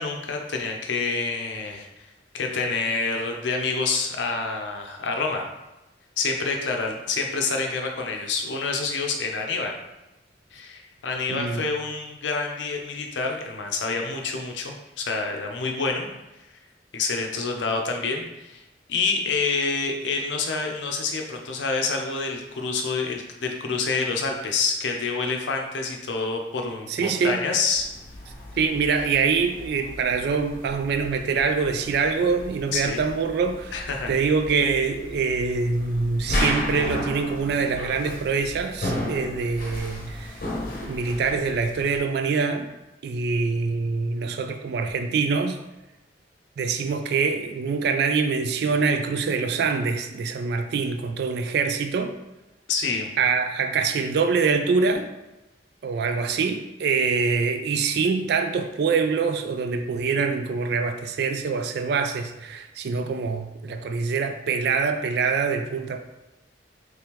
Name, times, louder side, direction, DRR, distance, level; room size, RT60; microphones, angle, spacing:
voice 1, 0.0-1.9 2.3-5.4 6.2-9.7 10.5-16.1 16.9-18.6 18.9-27.9 32.7-33.0 33.7-34.2 52.7-53.1, left 4 dB, 90° left, 2 dB, 0.6 m, -27 dB
voice 2, 11.3-11.6 26.9-27.4 28.6-33.8 34.1-40.4 40.8-42.7 43.0-45.6 46.6-52.1 53.2-55.1 55.8-66.0, right 5 dB, 65° right, 7 dB, 0.3 m, -24 dB
sound 1, 27.7-42.0, left 1 dB, 50° left, 0.8 m, -34 dB
3.5 x 3.2 x 2.9 m, 0.98 s
head